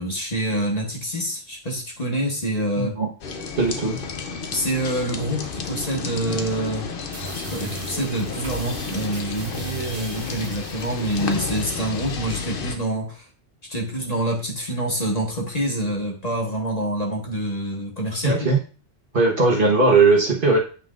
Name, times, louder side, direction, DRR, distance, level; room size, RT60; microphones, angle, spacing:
voice 1, 0.0-3.0 4.5-6.9 7.3-13.3 13.7-18.5, right 1 dB, 35° left, 0 dB, 1.4 m, -26 dB
voice 2, 2.8-3.1 3.6-4.0 18.2-18.6 19.1-20.6, right 3 dB, 50° right, 0 dB, 1.4 m, -18 dB
sound 1, 3.2-12.8, left 5 dB, 55° left, 0.9 m, -32 dB
sound 2, 7.1-12.1, right 4 dB, 70° right, 1.5 m, -38 dB
8.3 x 5.5 x 2.5 m, 0.36 s
omnidirectional pair, 1.2 m